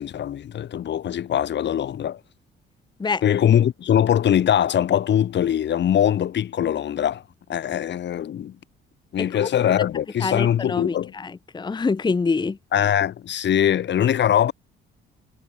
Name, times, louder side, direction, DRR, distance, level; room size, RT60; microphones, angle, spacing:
voice 1, 0.0-2.2 3.2-7.2 7.5-8.5 9.1-11.1 12.7-14.5, left 10 dB, 65° left, 2.5 m, -22 dB
voice 2, 10.2-12.6, left 4 dB, 20° left, 0.8 m, -25 dB
cardioid pair, 90°, 20 cm